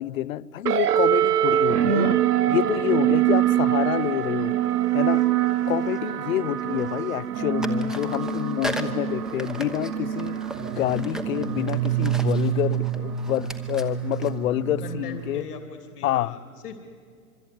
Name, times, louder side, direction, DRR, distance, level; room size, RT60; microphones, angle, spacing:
voice 1, 0.0-2.2 2.5-4.5 4.9-5.2 5.7-15.5 16.0-16.3, left 13 dB, 60° left, 0.8 m, -27 dB
sound 1, 0.6-15.4, right 11 dB, 85° right, 1.5 m, -25 dB
sound 2, 3.4-3.6 5.0-6.3 6.6-7.3 7.6-15.3, equal, ahead, 1.0 m, -39 dB
voice 2, 14.8-16.8, left 4 dB, 80° left, 3.2 m, -39 dB
26.0 x 23.5 x 9.6 m
hypercardioid pair, 150°, 45 cm